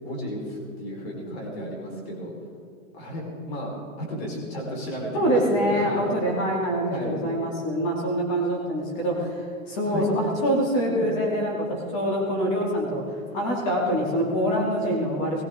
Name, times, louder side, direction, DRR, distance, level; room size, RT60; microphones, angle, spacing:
voice 1, 0.0-2.3 2.9-3.7 4.0-6.1 6.9-7.2 9.9-10.1, equal, 45° left, -1 dB, 4.6 m, -33 dB
voice 2, 5.1-15.4, equal, 20° left, -1 dB, 2.6 m, -25 dB
20.5 x 15.5 x 3.8 m, 2.4 s
hypercardioid pair, 180°, 42 cm